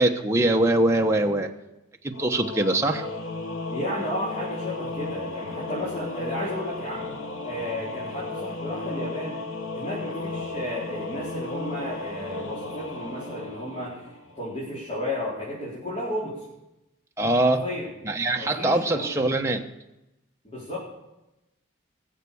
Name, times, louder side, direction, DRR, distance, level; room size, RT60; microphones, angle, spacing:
voice 1, 0.0-1.5 2.0-3.1 17.2-17.6 18.0-19.7, right 1 dB, 15° right, 3 dB, 1.0 m, -22 dB
Singing / Musical instrument, 2.1-14.6, left 3 dB, 85° left, 1.6 m, -34 dB
voice 2, 3.7-7.1 7.4-9.4 9.7-14.0 14.3-16.4 17.4-17.9 18.3-19.2 20.4-20.8, left 1 dB, 30° left, -8 dB, 4.2 m, -33 dB
20.0 x 7.5 x 7.0 m, 0.95 s
head